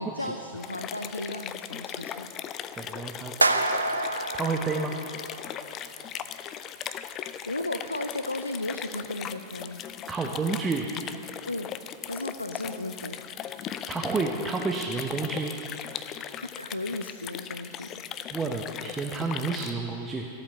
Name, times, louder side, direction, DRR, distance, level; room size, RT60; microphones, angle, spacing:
voice 1, 0.0-2.3 7.5-9.8 11.5-11.7 12.1-13.2 16.6-18.0, left 1 dB, 85° left, 8 dB, 0.5 m, -35 dB
sound 1, 0.6-19.7, left 9 dB, 35° left, 0.5 m, -38 dB
voice 2, 2.8-3.3 3.7-4.1 4.3-4.9 10.1-10.9 13.9-15.5 18.3-20.3, right 4 dB, 15° right, 2 dB, 0.9 m, -30 dB
sound 2, 3.4-5.6, right 2 dB, 80° right, 0.5 m, -27 dB
14.5 x 8.6 x 6.6 m, 2.9 s
figure-of-eight pair, 90°, 0 cm